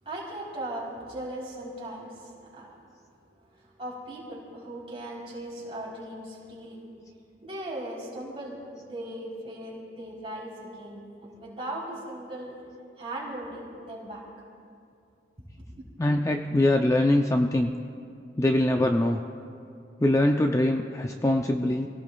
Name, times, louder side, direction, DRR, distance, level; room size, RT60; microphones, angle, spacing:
voice 1, 0.0-2.8 3.5-6.8 7.4-12.5 13.0-14.2 15.4-15.8, right 1 dB, 30° right, -5 dB, 3.6 m, -38 dB
voice 2, 16.0-17.7 18.4-19.2 20.0-21.9, left 1 dB, 15° left, 4 dB, 0.4 m, -23 dB
26.5 x 17.5 x 2.3 m, 2.4 s
head